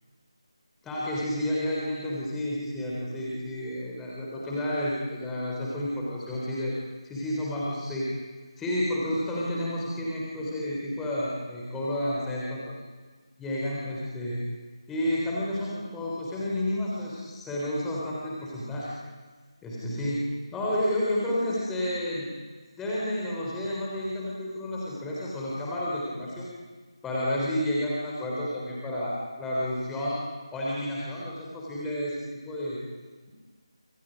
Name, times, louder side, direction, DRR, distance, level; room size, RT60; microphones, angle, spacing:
voice 1, 0.8-6.8 7.0-8.1 8.6-12.7 13.4-14.4 14.9-19.0 19.6-22.3 22.7-26.5 27.0-30.2 30.5-32.8, left 1 dB, 5° left, -6 dB, 3.6 m, -30 dB
28.0 x 28.0 x 5.3 m, 1.4 s
figure-of-eight pair, 160°, 3 cm